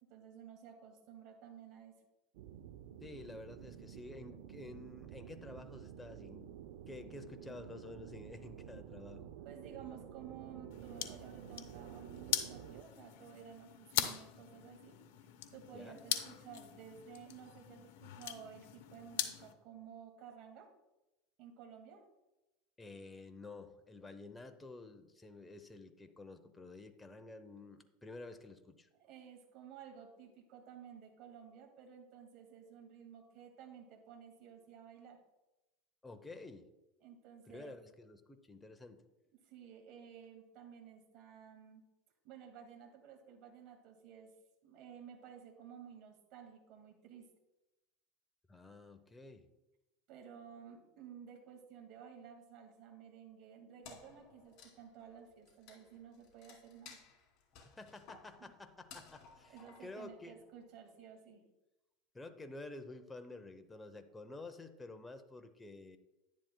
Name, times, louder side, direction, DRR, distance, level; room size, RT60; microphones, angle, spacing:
voice 1, 0.1-1.9 9.4-15.0 15.5-20.7 21.4-22.1 29.0-35.2 37.0-37.8 39.5-41.8 42.2-44.3 44.6-47.3 50.1-57.0 58.4-58.5 59.5-61.5, right 8 dB, 55° right, 3 dB, 1.9 m, -54 dB
sound 1, 2.3-12.8, right 10 dB, 75° right, 0.5 m, -51 dB
voice 2, 3.0-6.5 6.9-9.3 15.7-16.0 22.8-28.9 36.0-36.7 37.5-39.0 48.5-49.5 57.6-60.3 62.1-66.0, left 2 dB, 10° left, 7 dB, 0.7 m, -51 dB
sound 2, 10.7-19.5, left 12 dB, 75° left, 0.8 m, -42 dB
Wood, 53.8-60.6, left 5 dB, 50° left, 2.8 m, -58 dB
10.5 x 10.5 x 2.2 m, 0.98 s
supercardioid pair, 130°, 0 cm